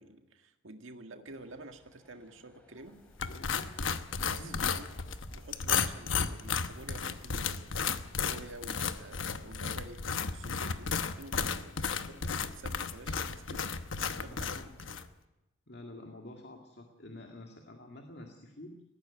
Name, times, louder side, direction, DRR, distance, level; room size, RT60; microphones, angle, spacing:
voice 1, 0.0-3.0 4.3-4.8 5.3-10.0 10.3-11.7 12.1-14.6, right 2 dB, 80° right, 6 dB, 1.8 m, -49 dB
sound 1, 1.3-15.1, equal, 5° left, 3.2 m, -60 dB
sound 2, 3.2-15.1, left 6 dB, 75° left, 1.0 m, -34 dB
voice 2, 3.3-3.8 4.3-4.7 11.3-11.9 14.1-15.0 15.7-18.8, left 1 dB, 55° left, 3 dB, 2.0 m, -49 dB
19.0 x 15.0 x 9.5 m, 0.98 s
head